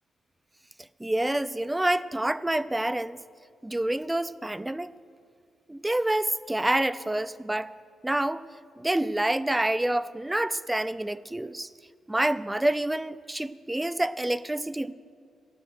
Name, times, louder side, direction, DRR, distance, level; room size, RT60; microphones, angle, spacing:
voice 1, 1.0-3.2 3.6-4.9 5.7-7.7 8.0-8.4 8.8-11.7 12.1-14.9, right 1 dB, 10° right, 16 dB, 0.4 m, -27 dB
15.0 x 12.0 x 6.4 m, 2.1 s
cardioid pair, 120°, 0 cm